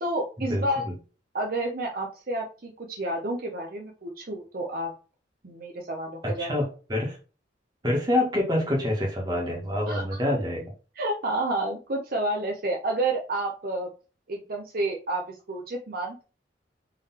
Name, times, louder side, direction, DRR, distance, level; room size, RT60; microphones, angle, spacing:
voice 1, 0.0-0.8 1.3-4.9 5.4-6.5 9.9-10.0 11.0-13.9 14.3-16.2, right 1 dB, 50° right, 0 dB, 0.7 m, -30 dB
voice 2, 6.2-7.2 7.8-10.7, left 1 dB, 20° right, -1 dB, 1.4 m, -26 dB
3.9 x 3.2 x 4.2 m, 0.35 s
head